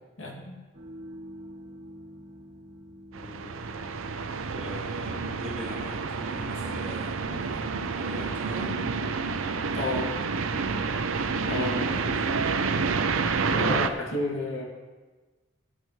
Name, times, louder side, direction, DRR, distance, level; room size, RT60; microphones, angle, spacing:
voice 1, 0.2-0.6 7.3-7.5 9.7-10.2 11.4-12.1 13.4-14.6, left 2 dB, 75° left, -3 dB, 2.4 m, -31 dB
sound 1, 0.7-10.9, right 1 dB, 55° right, 1.3 m, -46 dB
voice 2, 3.1-3.6 4.5-7.4 7.8-8.8 10.8-11.0 11.9-12.4, equal, ahead, -12 dB, 2.4 m, -41 dB
sound 2, 3.1-13.9, right 4 dB, 80° right, 0.6 m, -29 dB
18.0 x 8.6 x 3.2 m, 1.3 s
head